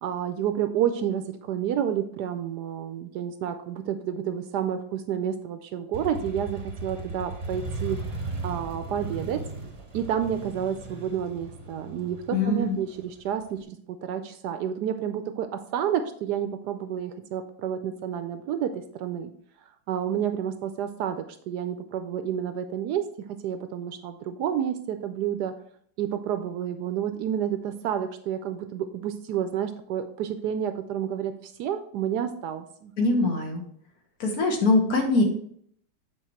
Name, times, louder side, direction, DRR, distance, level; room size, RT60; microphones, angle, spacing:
voice 1, 0.0-8.0 8.4-9.4 9.9-19.3 19.9-23.0 23.4-25.5 26.0-32.9 33.2-33.3, right 9 dB, 75° right, 9 dB, 1.0 m, -30 dB
Motorcycle, 5.9-13.6, right 3 dB, 25° right, 0.8 m, -37 dB
voice 2, 12.3-12.7 33.0-33.6 34.2-35.2, left 3 dB, 60° left, 2 dB, 1.7 m, -22 dB
8.2 x 4.1 x 4.4 m, 0.64 s
omnidirectional pair, 2.0 m